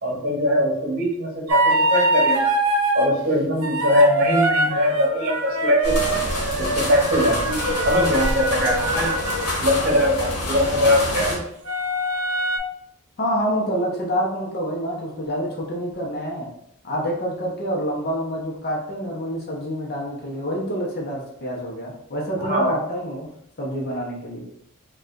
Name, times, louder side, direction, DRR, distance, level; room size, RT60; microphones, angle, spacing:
voice 1, 0.0-2.5 2.9-6.2 6.6-7.5 7.8-9.1 9.6-11.4 22.4-22.7, left 1 dB, 40° right, -1 dB, 1.0 m, -21 dB
sound 1, 1.5-3.1 3.6-9.5 11.6-12.6, right 2 dB, 80° right, 0.7 m, -23 dB
sound 2, 5.8-11.4, left 1 dB, 75° left, 1.2 m, -26 dB
voice 2, 13.2-16.5 16.8-23.3 23.6-24.4, equal, 45° left, -3 dB, 0.9 m, -27 dB
4.8 x 2.4 x 2.5 m, 0.74 s
head